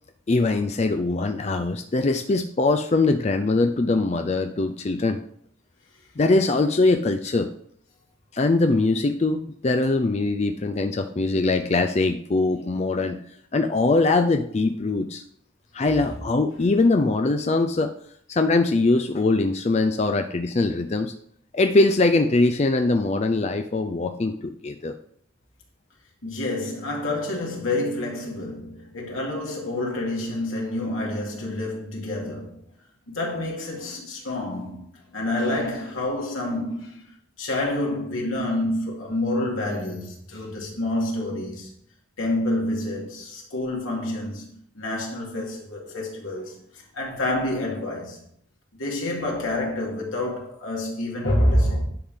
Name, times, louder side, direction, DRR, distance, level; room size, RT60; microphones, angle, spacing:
voice 1, 0.3-5.2 6.2-7.5 8.3-13.2 13.5-15.2 15.7-17.9 18.3-21.1 21.5-24.9, left 3 dB, 35° left, 0.4 m, -22 dB
voice 2, 26.2-32.6 33.1-37.1 37.4-41.7 42.2-48.2 48.7-51.8, left 1 dB, 85° left, 2.5 m, -28 dB
10.0 x 3.7 x 6.2 m
head